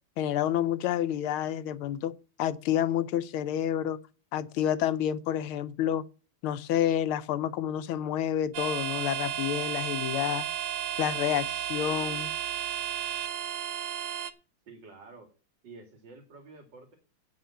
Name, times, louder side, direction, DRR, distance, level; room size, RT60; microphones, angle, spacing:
voice 1, 0.2-2.1 2.4-4.0 4.3-6.0 6.4-10.5 11.0-12.3, left 11 dB, 75° left, 1.6 m, -29 dB
sound 1, 8.5-14.3, right 10 dB, 75° right, 1.7 m, -33 dB
voice 2, 14.7-15.3 15.6-17.0, right 3 dB, 55° right, 2.8 m, -49 dB
8.8 x 6.6 x 8.4 m
omnidirectional pair, 2.4 m